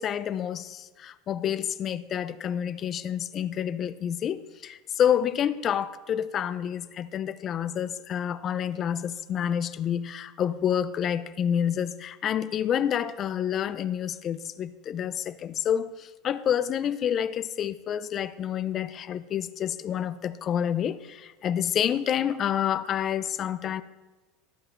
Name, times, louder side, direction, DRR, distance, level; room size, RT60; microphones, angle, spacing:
voice 1, 0.0-23.8, left 9 dB, 30° left, 0.4 m, -28 dB
13.0 x 7.7 x 4.4 m
supercardioid pair, 145°, 0 cm